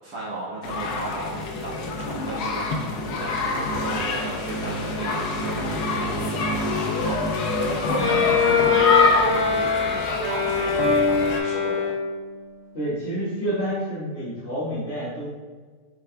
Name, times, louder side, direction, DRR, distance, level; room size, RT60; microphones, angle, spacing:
voice 1, 0.0-11.8, right 2 dB, 70° right, -8 dB, 1.5 m, -35 dB
sound 1, 0.6-11.4, left 3 dB, 85° left, 1.2 m, -26 dB
Bowed string instrument, 7.9-12.3, left 5 dB, 65° left, 1.8 m, -23 dB
voice 2, 12.7-15.3, equal, 45° left, -13 dB, 1.7 m, -29 dB
6.9 x 3.4 x 2.2 m, 1.5 s
omnidirectional pair, 1.7 m